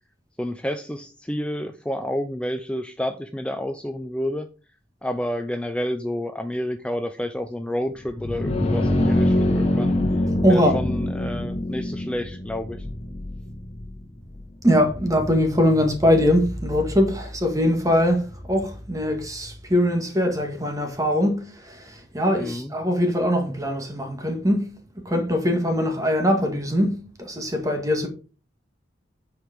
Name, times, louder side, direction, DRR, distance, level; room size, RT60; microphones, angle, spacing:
voice 1, 0.4-4.5 5.0-12.9 22.4-22.7, left 1 dB, 5° left, 0.4 m, -30 dB
sound 1, 8.0-19.6, left 1 dB, 35° left, 1.5 m, -26 dB
voice 2, 10.4-10.8 14.6-24.8 25.1-28.1, equal, 20° right, 1.7 m, -22 dB
9.3 x 4.9 x 5.1 m
head